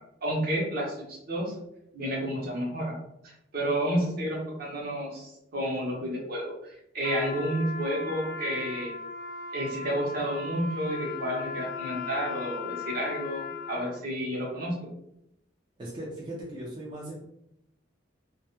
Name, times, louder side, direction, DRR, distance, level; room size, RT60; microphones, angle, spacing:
voice 1, 0.2-1.5 1.9-2.9 3.2-6.5 6.9-8.9 9.5-14.7, equal, 55° right, -2 dB, 0.8 m, -30 dB
Trumpet, 7.0-14.0, left 4 dB, 65° left, 0.5 m, -37 dB
voice 2, 15.8-17.2, right 1 dB, 25° right, -5 dB, 0.4 m, -38 dB
2.2 x 2.0 x 2.9 m, 0.80 s
head